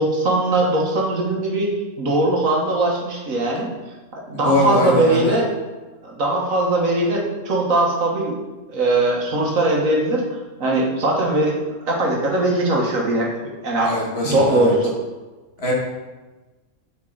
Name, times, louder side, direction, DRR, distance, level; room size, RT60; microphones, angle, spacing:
voice 1, 0.0-1.7 2.0-3.7 4.1-5.5 6.0-8.4 8.7-10.2 10.6-11.5 11.9-13.3 13.6-14.0 14.2-14.9, right 2 dB, 90° right, -2 dB, 1.8 m, -20 dB
voice 2, 4.4-5.4 13.8-14.7 15.6-15.7, left 1 dB, 50° left, -4 dB, 1.9 m, -22 dB
7.5 x 5.3 x 3.9 m, 1.2 s
omnidirectional pair, 1.4 m